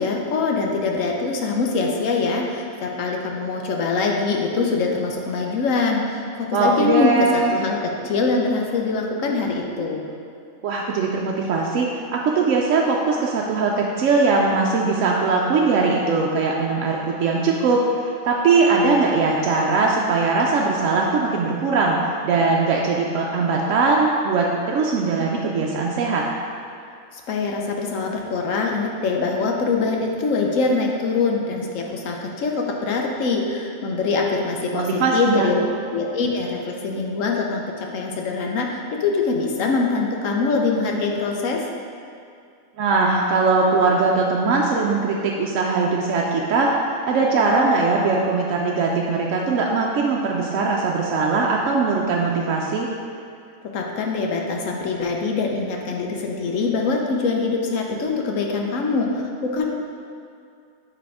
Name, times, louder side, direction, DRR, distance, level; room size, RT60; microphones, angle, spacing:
voice 1, 0.0-10.1 27.1-35.6 35.9-41.7 53.7-59.6, left 4 dB, 70° left, 1 dB, 1.1 m, -23 dB
voice 2, 6.5-7.5 10.6-22.0 22.2-26.3 34.7-35.7 42.8-46.7 47.1-52.9, right 4 dB, 70° right, -2 dB, 0.9 m, -20 dB
8.1 x 3.5 x 4.8 m, 2.4 s
omnidirectional pair, 1.4 m